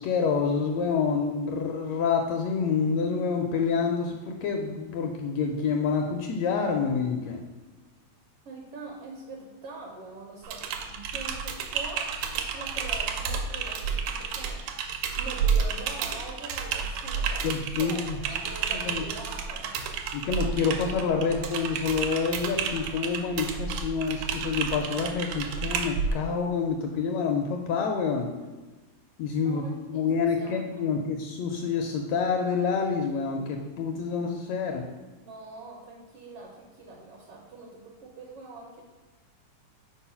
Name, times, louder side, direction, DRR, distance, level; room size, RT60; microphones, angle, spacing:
voice 1, 0.0-7.4 17.4-18.2 18.7-19.0 20.1-28.3 29.2-29.6 29.9-34.8, left 5 dB, 80° left, 3 dB, 1.5 m, -27 dB
voice 2, 8.4-10.6 10.9-12.1 12.5-14.6 15.2-17.5 17.8-19.7 29.4-30.9 34.0-34.1 35.2-38.8, right 3 dB, 70° right, -1 dB, 1.5 m, -43 dB
Typing, 10.4-26.1, right 6 dB, 85° right, 2.1 m, -31 dB
4.7 x 4.4 x 5.6 m, 1.2 s
omnidirectional pair, 3.4 m